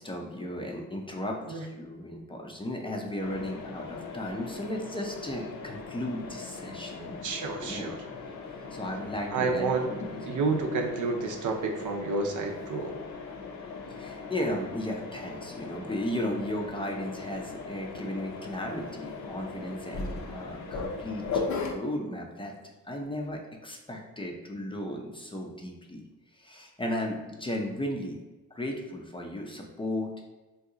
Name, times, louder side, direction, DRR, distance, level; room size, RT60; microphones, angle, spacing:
voice 1, 0.0-7.3 7.6-8.0 8.7-10.5 13.9-22.5 22.8-26.0 26.3-28.2 28.5-30.3, left 1 dB, 15° left, 0 dB, 0.5 m, -35 dB
Mechanisms, 3.2-21.7, left 4 dB, 60° left, 0.6 m, -39 dB
voice 2, 7.2-8.0 9.3-9.9 10.2-12.9, right 4 dB, 65° right, 2 dB, 0.6 m, -29 dB
2.7 x 2.3 x 3.7 m, 1.2 s
cardioid pair, 80°, 33 cm